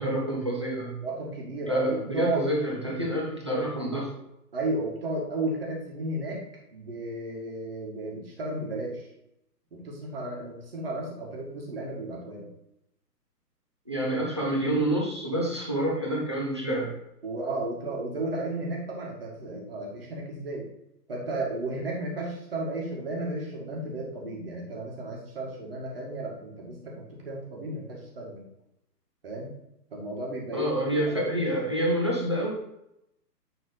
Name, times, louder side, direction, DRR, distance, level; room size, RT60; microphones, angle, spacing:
voice 1, 0.0-1.0 1.6-4.1 13.9-16.9 30.5-32.5, right 1 dB, 15° right, -3 dB, 0.7 m, -28 dB
voice 2, 1.0-2.5 4.5-6.4 6.7-9.0 9.7-12.5 17.2-20.7 21.1-28.4 29.2-29.5 29.9-31.2, right 2 dB, 35° right, -2 dB, 2.1 m, -33 dB
9.9 x 3.9 x 4.0 m, 0.82 s
hypercardioid pair, 175°, 49 cm